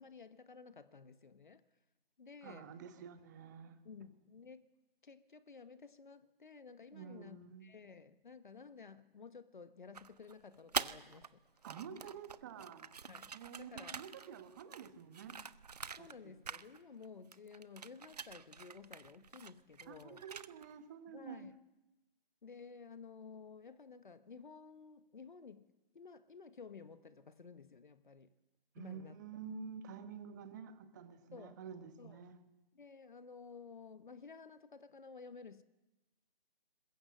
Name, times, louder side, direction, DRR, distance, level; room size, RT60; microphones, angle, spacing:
voice 1, 0.0-1.6 2.2-2.7 3.8-4.7 5.0-11.4 13.1-14.0 16.0-20.2 21.1-21.6 22.4-28.3 28.8-29.2 31.3-31.6 32.0-32.2 32.7-35.6, left 5 dB, 55° left, 1.1 m, -54 dB
voice 2, 2.4-3.8 6.9-7.7 11.6-12.9 13.3-15.4 16.0-16.3 19.9-21.5 28.7-32.4, right 7 dB, 20° right, 1.2 m, -49 dB
sound 1, 9.9-11.3 11.6-16.2 16.4-17.1 17.3-20.7, right 6 dB, 45° right, 0.7 m, -45 dB
22.5 x 21.0 x 7.6 m
figure-of-eight pair, 150°, 30 cm